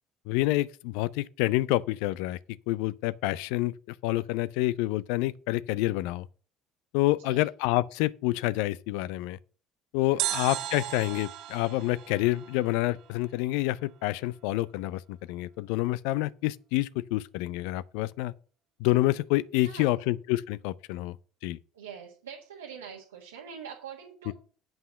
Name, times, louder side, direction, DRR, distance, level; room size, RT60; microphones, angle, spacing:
voice 1, 0.3-2.4 2.7-3.7 4.0-6.3 6.9-9.4 9.9-18.3 18.8-21.2 21.4-21.6, left 17 dB, 70° left, 0.4 m, -28 dB
voice 2, 7.2-7.5 10.1-10.3 19.5-20.1 21.7-24.3, right 7 dB, 85° right, 1.4 m, -44 dB
sound 1, 10.2-13.3 13.5-13.6, right 13 dB, 60° right, 0.6 m, -36 dB
8.0 x 5.5 x 6.9 m
hypercardioid pair, 60°, 0 cm